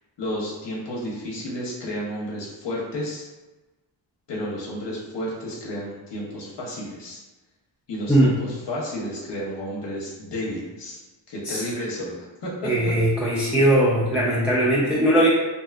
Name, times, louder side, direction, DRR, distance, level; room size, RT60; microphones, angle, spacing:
voice 1, 0.2-3.3 4.3-7.2 7.9-11.0 11.3-12.7 13.5-13.7, equal, 60° left, -4 dB, 0.8 m, -32 dB
voice 2, 12.6-15.3, right 1 dB, 5° right, -7 dB, 0.4 m, -19 dB
2.6 x 2.3 x 2.3 m, 1.1 s
cardioid pair, 75°, 47 cm